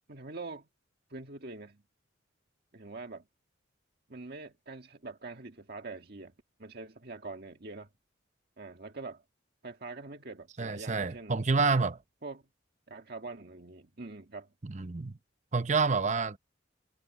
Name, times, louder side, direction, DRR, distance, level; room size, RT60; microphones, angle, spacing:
voice 1, 0.1-0.7 1.1-1.8 2.7-3.2 4.1-6.3 6.6-7.9 8.6-9.2 9.6-11.4 12.2-12.4 12.9-14.5, right 3 dB, 55° right, 1.7 m, -44 dB
voice 2, 10.6-12.0 14.6-15.2 15.5-16.4, right 4 dB, 40° right, 0.8 m, -28 dB
head